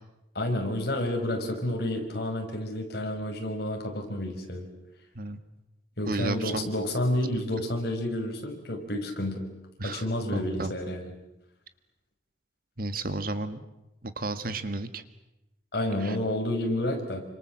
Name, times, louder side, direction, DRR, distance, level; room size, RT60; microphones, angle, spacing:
voice 1, 0.3-4.7 6.0-9.5 9.8-11.1 15.7-17.2, left 1 dB, 60° left, 3 dB, 5.7 m, -30 dB
voice 2, 6.1-6.7 9.8-10.0 10.3-10.7 12.8-13.6 14.0-15.0 16.0-16.2, right 2 dB, 50° right, 10 dB, 1.8 m, -32 dB
29.0 x 26.0 x 7.6 m, 0.90 s
head